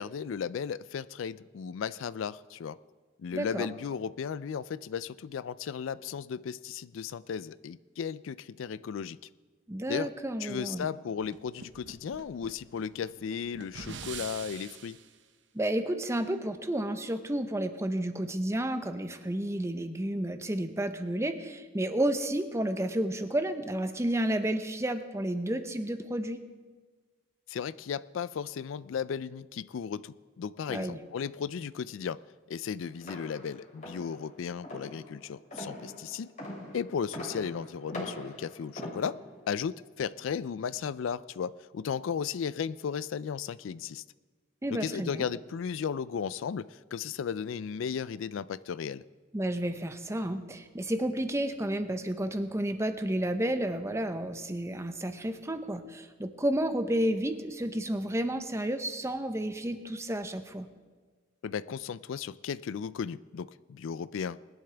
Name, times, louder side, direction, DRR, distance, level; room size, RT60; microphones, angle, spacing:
voice 1, 0.0-2.8 3.2-9.2 9.9-10.1 10.4-15.0 27.5-32.2 32.5-36.3 36.7-39.2 39.5-44.0 44.7-49.0 61.4-64.4, left 7 dB, 75° left, 17 dB, 0.4 m, -35 dB
voice 2, 3.3-3.7 9.7-10.9 15.5-26.4 30.7-31.0 44.6-45.3 49.3-60.7, right 1 dB, 15° right, 8 dB, 0.7 m, -31 dB
sound 1, 11.2-15.1, right 6 dB, 60° right, 0.8 m, -45 dB
sound 2, 33.0-39.5, left 1 dB, 40° left, 2.9 m, -43 dB
20.5 x 11.5 x 3.4 m, 1.4 s
head